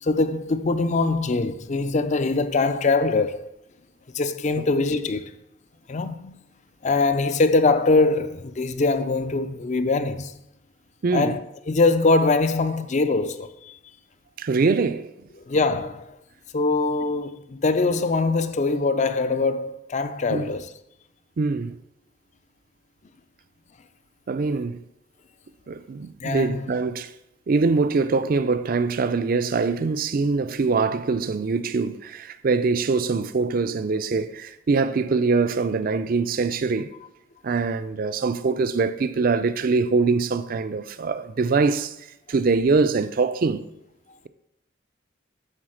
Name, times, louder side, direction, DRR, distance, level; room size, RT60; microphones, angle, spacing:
voice 1, 0.0-3.5 4.1-5.3 5.9-6.4 6.8-10.3 11.1-11.4 11.7-13.8 15.5-16.2 16.5-20.7 26.2-26.7, left 3 dB, 40° left, 0.4 m, -22 dB
voice 2, 11.0-11.4 14.4-15.3 20.3-20.5 21.4-21.8 24.3-24.8 25.7-27.1 27.5-36.9 37.4-41.9 42.3-43.6, right 4 dB, 50° right, 0.4 m, -23 dB
8.9 x 3.9 x 6.3 m
head